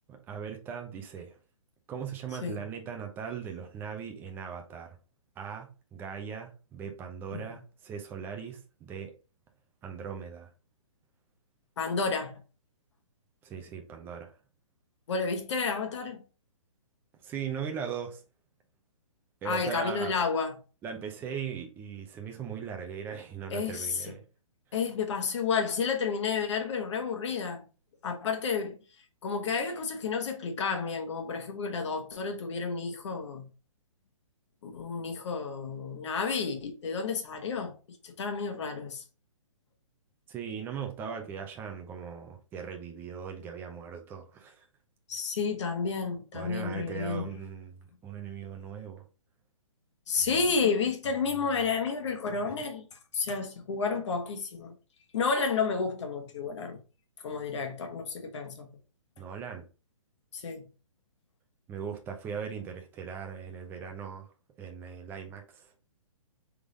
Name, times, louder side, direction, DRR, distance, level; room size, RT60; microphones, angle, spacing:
voice 1, 0.1-1.4 1.9-5.0 5.4-9.1 9.8-10.5 13.4-14.3 17.2-18.2 19.4-20.1 20.8-24.2 40.3-44.7 46.3-49.1 52.4-52.5 59.2-59.7 61.7-64.3 64.6-65.7, right 7 dB, 10° right, 0.6 m, -39 dB
voice 2, 11.8-12.3 15.1-16.2 19.4-20.5 23.5-24.1 24.7-27.6 28.0-28.8 29.2-33.5 34.6-37.8 38.0-39.0 45.1-47.3 50.1-52.8 53.1-54.7 55.1-56.8 57.2-58.7 60.3-60.7, left 5 dB, 55° left, 1.2 m, -31 dB
3.7 x 3.3 x 3.9 m
hypercardioid pair, 150°, 17 cm